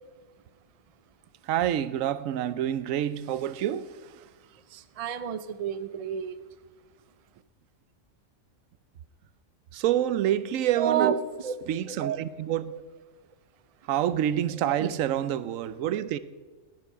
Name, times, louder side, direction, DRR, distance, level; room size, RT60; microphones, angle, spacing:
voice 1, 1.5-4.1 9.7-11.1 11.7-12.8 13.9-16.2, right 11 dB, 85° right, 1.0 m, -27 dB
voice 2, 4.7-6.4 10.8-11.2 11.4-11.5 14.6-14.9, right 9 dB, 40° right, 0.5 m, -29 dB
15.0 x 11.0 x 5.6 m
omnidirectional pair, 1.3 m